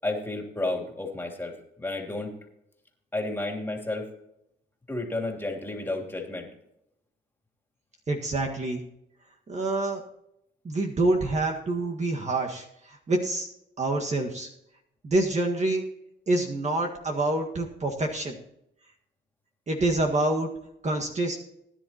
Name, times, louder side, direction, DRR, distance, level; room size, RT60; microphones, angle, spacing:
voice 1, 0.0-2.3 3.1-4.1 4.9-6.5, left 2 dB, 10° left, 1 dB, 3.2 m, -32 dB
voice 2, 8.1-8.8 9.5-10.0 10.6-13.5 13.8-14.5 15.0-15.8 16.3-18.4 19.7-20.5 20.8-21.4, right 2 dB, 35° right, 1 dB, 1.7 m, -27 dB
19.5 x 10.5 x 3.0 m, 0.80 s
cardioid pair, 90°, 20 cm